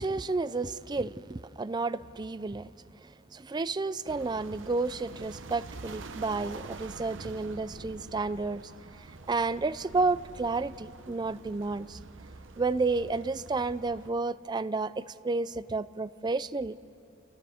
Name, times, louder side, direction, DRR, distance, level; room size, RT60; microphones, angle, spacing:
voice 1, 0.0-2.7 3.3-8.6 9.3-12.0 12.6-16.8, right 3 dB, 20° right, 14 dB, 0.4 m, -31 dB
sound 1, 4.1-14.1, right 3 dB, 80° right, 0.8 m, -46 dB
29.5 x 29.5 x 3.5 m, 2.8 s
head